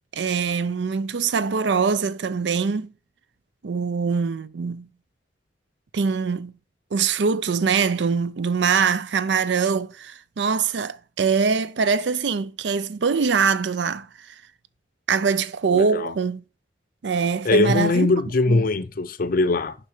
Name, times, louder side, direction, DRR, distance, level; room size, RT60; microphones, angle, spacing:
voice 1, 0.1-2.9 3.6-4.9 5.9-6.5 6.9-14.1 15.1-16.4 17.0-18.1 18.5-18.7, right 5 dB, 80° right, 0.5 m, -23 dB
voice 2, 15.7-16.1 17.4-19.8, left 2 dB, 55° left, 0.6 m, -21 dB
6.7 x 5.4 x 4.9 m
head